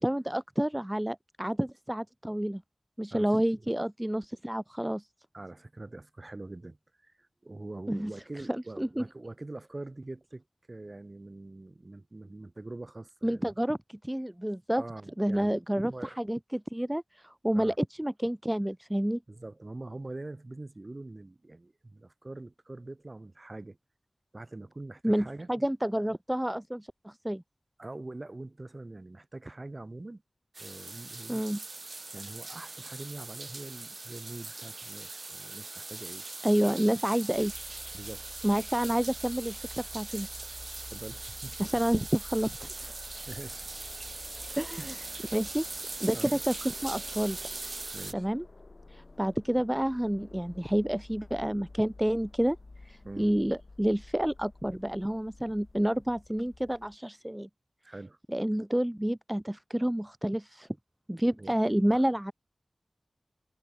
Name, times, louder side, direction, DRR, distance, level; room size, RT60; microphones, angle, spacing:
voice 1, 0.0-2.6 3.0-5.1 7.9-8.1 8.5-9.0 13.2-14.8 15.2-19.2 25.0-27.4 31.3-31.6 36.4-37.8 38.4-40.5 41.6-42.9 44.6-44.9 45.3-45.6 46.0-47.4 48.1-48.4 48.9-52.6 52.8-57.5 58.3-60.7 61.1-62.3, right 1 dB, 10° right, 0.4 m, -29 dB
voice 2, 3.1-3.7 5.3-13.5 14.8-15.5 15.8-16.2 17.5-17.8 19.3-23.8 24.3-25.5 27.8-30.2 30.6-31.6 32.1-36.2 37.9-38.3 40.9-41.6 43.3-43.7 44.8-45.2 46.1-46.4 47.9-48.3 53.0-53.6 57.8-58.2 61.4-61.6 61.9-62.0, right 2 dB, 40° right, 6.3 m, -44 dB
sound 1, 30.5-48.1, right 3 dB, 55° right, 1.2 m, -41 dB
sound 2, 37.3-57.0, left 2 dB, 50° left, 2.8 m, -51 dB
wide cardioid pair, 70°, 0 cm